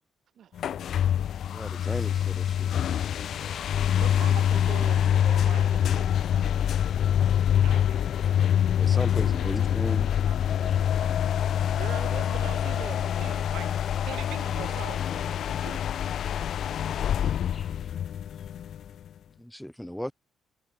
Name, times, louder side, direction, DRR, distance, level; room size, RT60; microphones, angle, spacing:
voice 1, 0.3-0.7 9.2-12.4 14.4-15.5 17.3-17.7, right 9 dB, 65° right, 5.2 m, -52 dB
sound 1, 0.6-19.1, left 9 dB, 65° left, 0.5 m, -25 dB
voice 2, 1.5-2.8 8.2-8.3 8.7-10.1 19.4-20.1, equal, 5° left, 0.7 m, -37 dB
voice 3, 3.8-6.5 7.6-8.0 11.7-13.7 14.0-15.0 15.6-15.8, right 15 dB, 90° right, 4.3 m, -41 dB
sound 2, 7.8-18.6, left 5 dB, 40° left, 5.9 m, -61 dB
cardioid pair, 90°, 0 cm